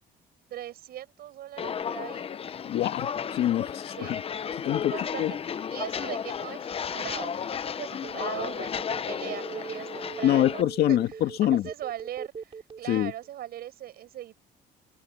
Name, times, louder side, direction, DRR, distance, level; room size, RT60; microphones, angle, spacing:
voice 1, 0.5-2.3 4.0-4.2 4.9-11.0 11.4-14.3, right 12 dB, 65° right, 6.1 m, -40 dB
Walk footsteps, 1.6-10.6, left 7 dB, 35° left, 0.8 m, -33 dB
voice 2, 2.6-4.2 4.6-4.9 5.2-5.3 10.2-11.7 12.9-13.1, left 12 dB, 70° left, 2.1 m, -25 dB
Telephone, 8.0-13.3, right 6 dB, 35° right, 3.9 m, -39 dB
cardioid pair, 110°, 17 cm